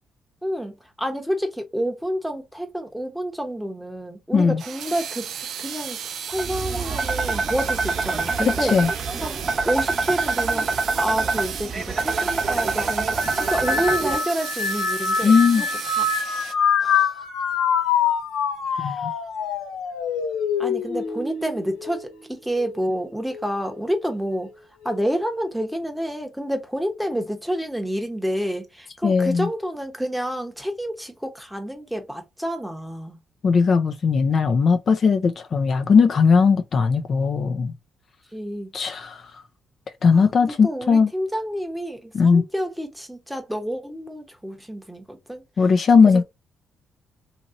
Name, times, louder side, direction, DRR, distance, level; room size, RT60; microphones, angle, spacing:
voice 1, 0.4-5.3 5.6-6.0 6.3-8.8 9.2-15.3 15.6-16.1 16.8-17.2 18.7-19.1 20.6-24.5 24.8-33.2 38.3-38.7 40.1-45.4 46.1-46.2, equal, ahead, 0.9 m, -29 dB
sound 1, 4.6-16.5, right 8 dB, 70° right, 0.5 m, -34 dB
sound 2, 6.3-14.1, right 4 dB, 35° right, 1.0 m, -25 dB
voice 2, 8.5-8.9 15.2-15.6 18.8-19.1 29.0-29.5 33.4-37.7 38.7-39.2 40.0-41.1 42.1-42.5 45.6-46.2, left 5 dB, 50° left, 0.5 m, -18 dB
sound 3, 13.2-22.8 23.3-23.9 24.8-25.2, left 6 dB, 90° left, 0.7 m, -25 dB
2.9 x 2.7 x 2.5 m
cardioid pair, 90°, 0 cm